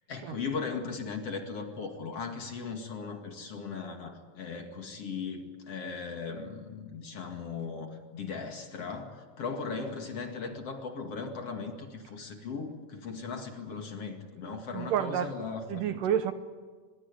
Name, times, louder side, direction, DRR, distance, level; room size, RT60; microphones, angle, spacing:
voice 1, 0.1-16.0, left 5 dB, 45° left, 4 dB, 2.8 m, -38 dB
voice 2, 14.4-15.3 15.7-16.3, right 9 dB, 70° right, 10 dB, 2.4 m, -30 dB
24.5 x 21.5 x 9.8 m, 1.5 s
omnidirectional pair, 4.2 m